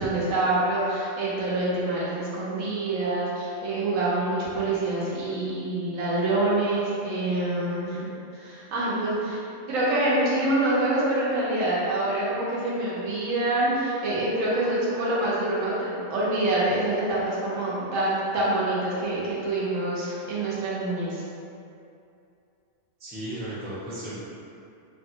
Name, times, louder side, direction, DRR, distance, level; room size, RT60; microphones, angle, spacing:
voice 1, 0.0-9.4 9.7-21.2, right 2 dB, 80° right, -7 dB, 1.2 m, -26 dB
voice 2, 23.0-24.2, right 1 dB, 10° right, -10 dB, 0.4 m, -35 dB
3.0 x 2.5 x 2.7 m, 2.6 s
omnidirectional pair, 1.4 m